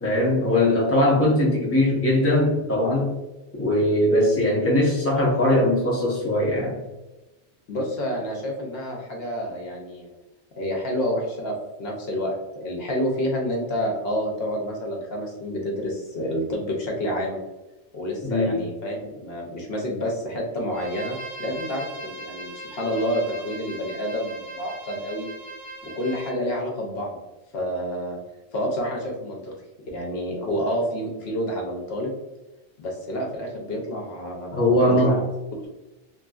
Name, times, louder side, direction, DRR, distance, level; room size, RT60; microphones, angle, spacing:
voice 1, 0.0-3.2 3.5-6.8 18.2-18.6 34.5-35.2, left 1 dB, 15° left, -3 dB, 0.5 m, -20 dB
voice 2, 7.7-10.1 10.6-17.4 17.9-25.3 25.8-27.2 27.5-28.2 28.5-29.5 29.9-32.1 32.8-35.7, equal, 65° left, 0 dB, 0.8 m, -29 dB
Bowed string instrument, 20.7-26.4, right 1 dB, 55° right, 1.0 m, -39 dB
3.0 x 2.5 x 2.3 m, 1.0 s
omnidirectional pair, 1.2 m